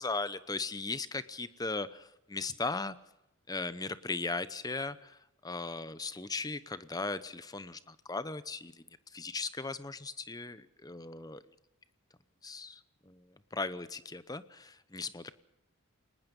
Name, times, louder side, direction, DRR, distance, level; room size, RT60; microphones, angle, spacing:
voice 1, 0.0-3.0 3.5-11.4 12.4-15.3, left 3 dB, 15° left, 14 dB, 0.8 m, -38 dB
29.5 x 19.5 x 5.4 m, 0.88 s
head